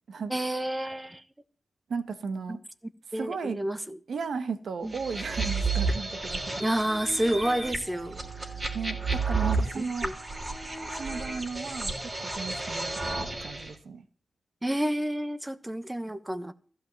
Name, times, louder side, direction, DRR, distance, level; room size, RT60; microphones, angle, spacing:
voice 1, 0.3-1.2 2.5-2.6 3.1-4.0 4.8-4.9 6.6-8.5 9.8-10.1 14.6-16.5, right 1 dB, 10° right, 1.1 m, -30 dB
voice 2, 1.9-2.6 3.1-3.6 4.1-6.7 8.7-10.1 10.9-14.0, right 5 dB, 85° right, 1.5 m, -35 dB
sound 1, 4.9-13.7, right 3 dB, 30° right, 3.3 m, -32 dB
15.0 x 5.5 x 9.1 m
wide cardioid pair, 110°, 0 cm